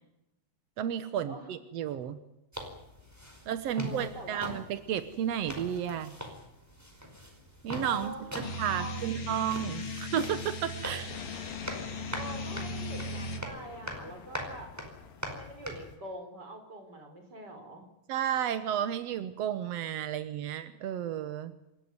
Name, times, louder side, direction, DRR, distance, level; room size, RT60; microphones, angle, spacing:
voice 1, 0.8-2.2 3.5-6.1 7.6-11.1 18.1-21.5, right 9 dB, 70° right, 11 dB, 1.5 m, -32 dB
sound 1, 2.5-16.0, equal, 5° right, 4.3 m, -43 dB
voice 2, 3.8-4.4 7.8-9.3 12.1-14.7 15.3-17.9, right 1 dB, 25° right, 5 dB, 5.3 m, -44 dB
sound 2, 8.4-13.4, left 1 dB, 35° left, 2.7 m, -38 dB
sound 3, 11.1-16.0, left 9 dB, 70° left, 3.0 m, -48 dB
27.5 x 14.0 x 9.7 m, 0.92 s
omnidirectional pair, 4.3 m